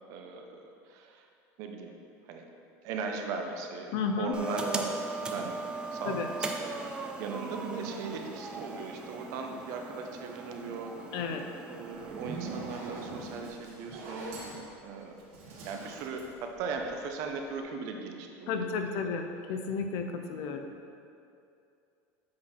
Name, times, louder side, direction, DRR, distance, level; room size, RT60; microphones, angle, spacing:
voice 1, 0.1-0.6 0.9-1.2 1.6-2.0 2.3-2.4 2.8-5.6 5.9-11.2 11.7-14.4 14.8-15.1 15.6-18.8, right 4 dB, 50° right, 3 dB, 0.7 m, -38 dB
voice 2, 3.9-4.3 6.1-6.3 11.1-11.5 18.5-20.7, left 5 dB, 50° left, 6 dB, 0.5 m, -32 dB
sound 1, 4.3-13.5, right 3 dB, 10° right, 0.4 m, -39 dB
Zipper (clothing), 11.9-17.2, right 3 dB, 70° right, 1.6 m, -43 dB
7.5 x 4.1 x 4.4 m, 2.5 s
cardioid pair, 170°, 7 cm